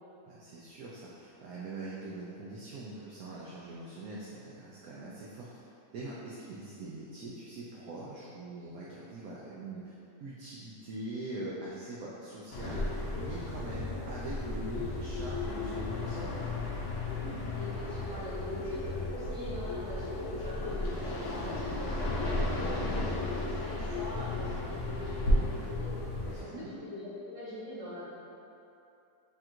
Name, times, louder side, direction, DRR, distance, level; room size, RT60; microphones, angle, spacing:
voice 1, 0.2-5.5 5.9-9.9 10.2-16.3 26.2-26.7, right 2 dB, 70° right, -6 dB, 0.8 m, -43 dB
sound 1, 12.5-26.4, left 2 dB, 70° left, 0.7 m, -34 dB
voice 2, 17.5-22.1 22.4-26.0 26.4-28.0, left 1 dB, 20° right, -11 dB, 1.0 m, -43 dB
3.5 x 2.5 x 4.3 m, 2.8 s
omnidirectional pair, 1.9 m